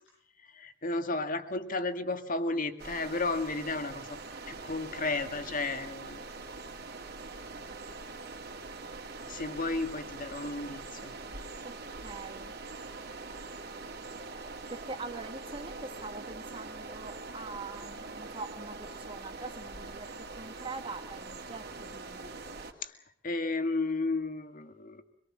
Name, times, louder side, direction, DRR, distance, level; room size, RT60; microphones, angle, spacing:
voice 1, 0.5-4.2 4.5-6.2 9.3-11.1 22.8-22.9 23.2-25.0, left 3 dB, 45° left, 8 dB, 2.1 m, -33 dB
sound 1, 2.8-22.7, right 3 dB, 55° right, 2.9 m, -43 dB
voice 2, 11.6-12.5 14.7-22.4, right 3 dB, 30° right, 6 dB, 1.5 m, -44 dB
25.0 x 23.0 x 7.5 m, 0.65 s
head